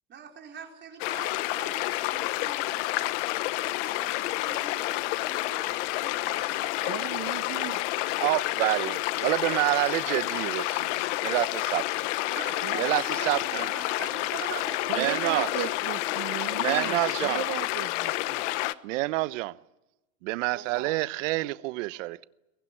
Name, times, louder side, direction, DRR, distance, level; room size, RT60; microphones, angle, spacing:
voice 1, 0.1-8.6 12.2-17.1 20.5-21.1, right 7 dB, 25° right, 4.5 m, -45 dB
sound 1, 1.0-18.7, left 18 dB, 60° left, 1.1 m, -29 dB
voice 2, 6.9-7.8 12.6-12.9 14.9-18.5, right 17 dB, 45° right, 1.1 m, -37 dB
voice 3, 8.2-12.1 12.8-13.7 14.9-15.7 16.5-17.4 18.8-19.6 20.2-22.2, right 20 dB, 65° right, 1.0 m, -28 dB
23.0 x 20.5 x 10.0 m
supercardioid pair, 145°, 41 cm